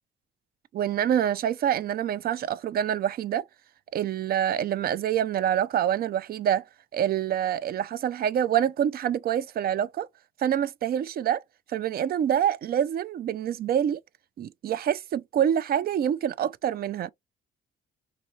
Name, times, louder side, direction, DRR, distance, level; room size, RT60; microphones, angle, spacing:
voice 1, 0.7-3.4 3.9-6.7 6.9-10.1 10.4-11.4 11.7-14.0 14.4-17.1, right 10 dB, 50° right, 0.4 m, -26 dB
3.7 x 3.0 x 2.7 m
cardioid pair, 90°, 20 cm